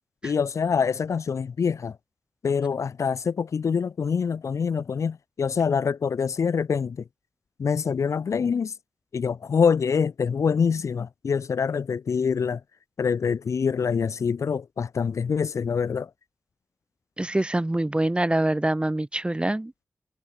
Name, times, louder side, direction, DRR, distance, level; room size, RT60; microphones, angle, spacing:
voice 1, 0.2-2.0 2.4-7.0 7.6-8.7 9.1-12.6 13.0-16.1, left 6 dB, 85° left, 5.8 m, -25 dB
voice 2, 17.2-19.8, right 1 dB, 20° right, 3.0 m, -25 dB
cardioid pair, 55°, 5 cm